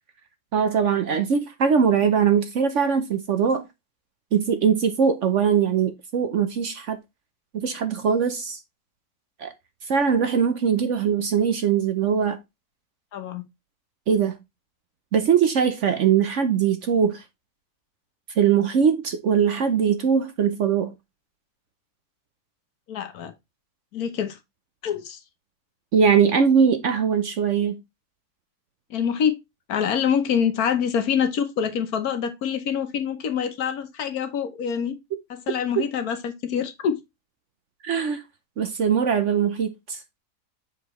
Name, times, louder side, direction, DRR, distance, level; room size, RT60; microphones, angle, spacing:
voice 1, 0.5-3.6 4.3-7.0 7.5-8.6 9.4-9.5 9.9-12.4 14.1-14.4 15.1-17.2 18.4-20.9 25.9-27.8 37.8-38.2 38.6-40.0, right 7 dB, 60° right, 0.9 m, -21 dB
voice 2, 13.1-13.5 22.9-23.3 23.9-24.4 24.8-25.2 28.9-29.3 29.7-35.0 35.3-37.0, left 7 dB, 65° left, 1.3 m, -25 dB
6.5 x 5.0 x 3.0 m
omnidirectional pair, 1.7 m